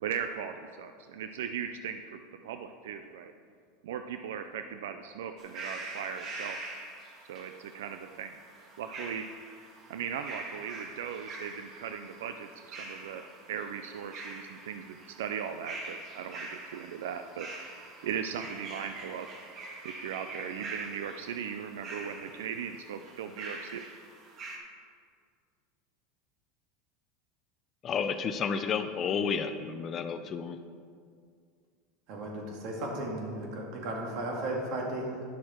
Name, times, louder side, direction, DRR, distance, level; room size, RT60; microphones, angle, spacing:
voice 1, 0.0-3.3 3.8-6.6 7.3-17.5 18.0-19.4 19.8-23.9, right 8 dB, 85° right, 8 dB, 0.4 m, -38 dB
sound 1, 5.4-24.6, right 2 dB, 40° right, 1.6 m, -44 dB
voice 2, 27.8-30.6, left 6 dB, 35° left, 9 dB, 0.5 m, -31 dB
voice 3, 32.1-35.2, right 1 dB, 60° right, -1 dB, 2.1 m, -35 dB
10.5 x 6.3 x 4.4 m, 2.1 s
supercardioid pair, 115°, 0 cm